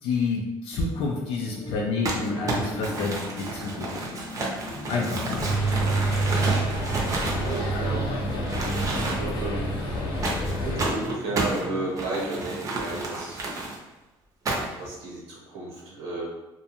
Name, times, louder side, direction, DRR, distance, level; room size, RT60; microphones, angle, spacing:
voice 1, 0.0-4.1 4.9-5.4, left 4 dB, 70° left, -1 dB, 0.4 m, -29 dB
sound 1, 0.7-12.7, left 2 dB, 10° left, 0.6 m, -39 dB
Crumpling crinkling, 2.0-8.1 8.5-9.4 10.2-13.8 14.4-14.9, right 2 dB, 35° right, 0.6 m, -31 dB
voice 2, 3.2-3.7 4.8-5.1 7.4-8.1 9.0-9.7 10.6-13.5 14.8-16.2, right 2 dB, 90° right, -3 dB, 0.9 m, -33 dB
sound 2, 5.4-10.9, right 2 dB, 50° left, 0.8 m, -27 dB
2.4 x 2.2 x 2.8 m, 0.98 s
cardioid pair, 120°, 10 cm